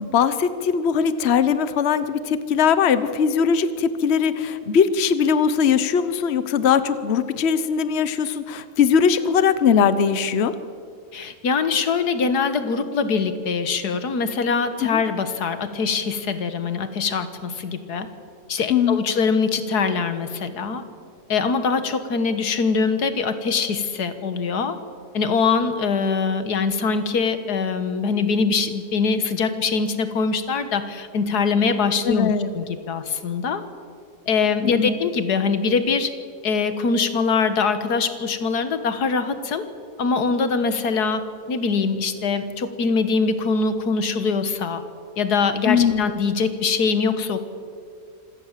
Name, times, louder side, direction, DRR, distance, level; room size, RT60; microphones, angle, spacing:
voice 1, 0.0-10.5 14.8-15.0 18.7-19.0 32.0-32.5 34.6-34.9 45.7-46.1, left 7 dB, 50° left, 13 dB, 1.1 m, -20 dB
voice 2, 11.1-18.1 18.5-20.8 21.3-24.8 25.1-33.6 34.3-36.1 36.4-39.7 40.0-41.2 41.5-44.8 45.2-47.4, left 5 dB, 90° left, 10 dB, 1.9 m, -23 dB
26.0 x 17.0 x 7.5 m, 2.2 s
omnidirectional pair, 1.7 m